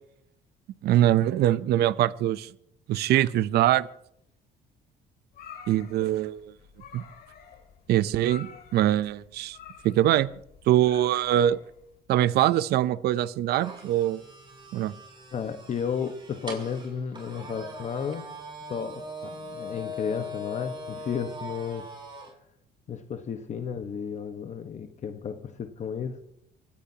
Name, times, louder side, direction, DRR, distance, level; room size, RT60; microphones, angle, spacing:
voice 1, 0.8-2.5 2.9-3.9 5.7-6.4 6.9-7.0 7.9-9.6 9.8-10.3 10.7-11.6 12.1-14.2 14.7-14.9, right 13 dB, 70° right, 17 dB, 0.6 m, -23 dB
sound 1, 5.3-12.0, left 7 dB, 65° left, 3.0 m, -49 dB
sound 2, 13.6-22.3, left 1 dB, 30° right, 6.7 m, -40 dB
voice 2, 15.3-18.2 18.7-21.9 22.9-26.2, left 7 dB, 45° left, 7 dB, 1.3 m, -33 dB
24.0 x 17.0 x 2.9 m, 0.74 s
cardioid pair, 110°, 17 cm